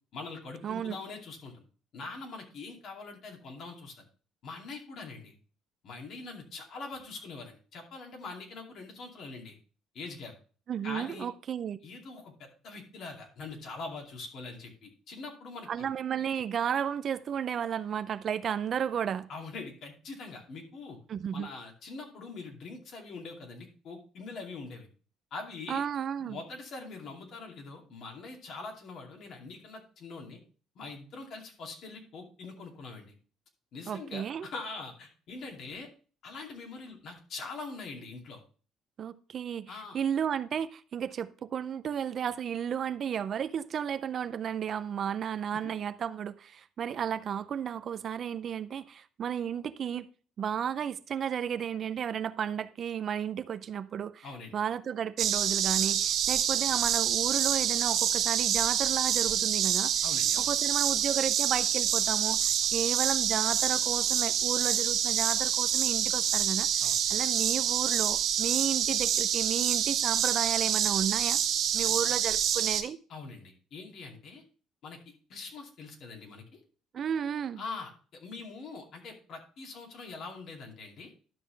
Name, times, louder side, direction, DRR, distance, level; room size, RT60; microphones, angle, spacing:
voice 1, 0.1-1.6 1.9-4.1 4.4-5.3 5.8-9.5 9.9-10.3 10.8-11.3 11.8-15.7 19.3-21.0 21.3-24.9 25.3-25.8 26.2-30.4 30.7-33.2 33.7-35.9 36.2-38.4 39.7-40.0 45.5-45.6 54.2-54.5 60.0-60.5 66.8-67.0 71.8-71.9 73.1-74.4 74.8-75.0 75.3-76.4 77.6-81.1, left 3 dB, 55° left, 2.6 m, -43 dB
voice 2, 0.6-1.0 10.7-11.8 15.7-19.3 21.1-21.5 25.7-26.4 33.9-34.5 39.0-50.1 50.4-54.3 54.5-59.9 60.4-66.7 67.1-71.4 71.7-73.0 76.9-77.6, right 8 dB, 45° right, 0.5 m, -33 dB
sound 1, 55.2-72.8, right 9 dB, 65° right, 1.3 m, -27 dB
12.0 x 6.0 x 3.3 m
cardioid pair, 125°, 0 cm